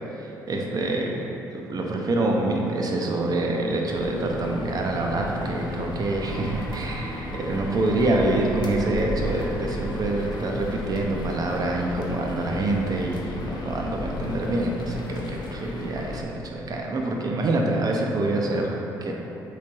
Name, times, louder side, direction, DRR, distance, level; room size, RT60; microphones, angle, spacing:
voice 1, 0.2-1.2 1.5-19.1, right 2 dB, 40° right, 0 dB, 0.5 m, -26 dB
sound 1, 3.9-16.2, left 2 dB, 45° left, 0.4 m, -35 dB
sound 2, 6.1-16.8, right 2 dB, 65° right, 0.8 m, -39 dB
3.3 x 3.2 x 2.7 m, 3.0 s
hypercardioid pair, 45°, 10 cm